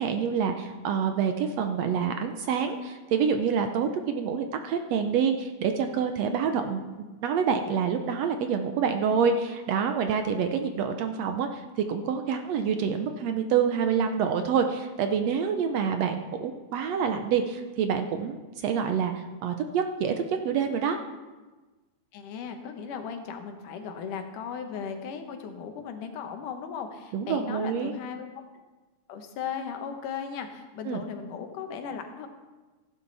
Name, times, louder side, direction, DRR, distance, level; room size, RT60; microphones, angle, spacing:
voice 1, 0.0-6.8 7.2-21.0 27.1-27.9 30.9-31.0, right 6 dB, 75° right, 6 dB, 1.7 m, -27 dB
voice 2, 22.1-28.3 29.1-32.3, left 7 dB, 85° left, 6 dB, 2.7 m, -37 dB
15.0 x 11.5 x 4.0 m, 1.2 s
omnidirectional pair, 3.5 m